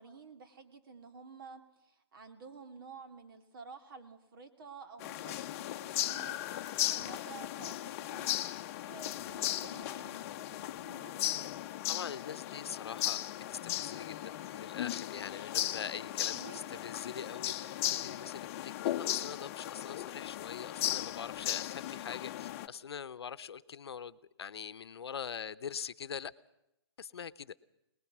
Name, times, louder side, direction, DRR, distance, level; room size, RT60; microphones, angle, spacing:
voice 1, 0.0-8.4 8.8-11.6 16.2-16.9 17.2-17.3, right 5 dB, 55° right, 7 dB, 2.7 m, -52 dB
sound 1, 5.0-22.7, left 13 dB, 35° left, 0.8 m, -37 dB
voice 2, 11.9-13.2 13.5-26.3 27.0-27.6, left 7 dB, 70° left, 15 dB, 0.8 m, -43 dB
sound 2, 12.8-17.8, left 1 dB, 15° right, 6.6 m, -65 dB
25.5 x 20.0 x 6.1 m, 0.85 s
hypercardioid pair, 140°, 14 cm